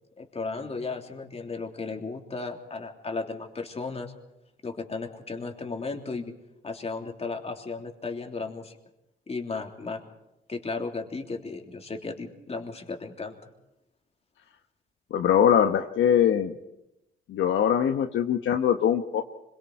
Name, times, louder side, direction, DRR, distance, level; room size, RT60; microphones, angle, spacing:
voice 1, 0.2-4.1 4.6-6.3 6.6-8.8 9.3-10.0 10.5-13.5, left 4 dB, 30° left, 3 dB, 3.3 m, -35 dB
voice 2, 15.1-16.5 17.3-19.2, left 9 dB, 75° left, 6 dB, 1.2 m, -22 dB
26.0 x 22.5 x 4.8 m, 0.88 s
cardioid pair, 90°, 20 cm